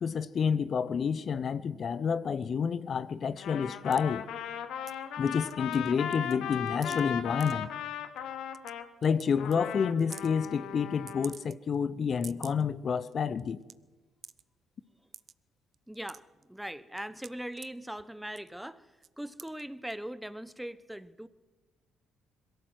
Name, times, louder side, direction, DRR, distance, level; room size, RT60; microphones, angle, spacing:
voice 1, 0.0-4.2 5.2-7.7 9.0-13.6, left 6 dB, 50° left, 0.8 m, -29 dB
Trumpet, 3.4-8.9 9.4-11.3, left 8 dB, 65° left, 1.6 m, -37 dB
sound 1, 3.9-4.0 4.9-5.0 5.3-5.9 6.1-7.0 7.4-7.5 8.2-8.3 8.5-8.7 9.0-9.3 9.5-9.6 10.0-10.3 11.1-11.8 12.1-12.6 13.1-13.2 13.4-13.7 14.2-14.4 15.1-15.3 15.7-16.4 17.0-17.7 18.3-18.6 19.0-19.1 19.4-19.6 19.9-20.0, right 7 dB, 50° right, 0.7 m, -47 dB
voice 2, 15.9-18.9 19.2-21.3, right 1 dB, 5° right, 1.1 m, -40 dB
22.0 x 15.5 x 7.9 m
hypercardioid pair, 50°, 0 cm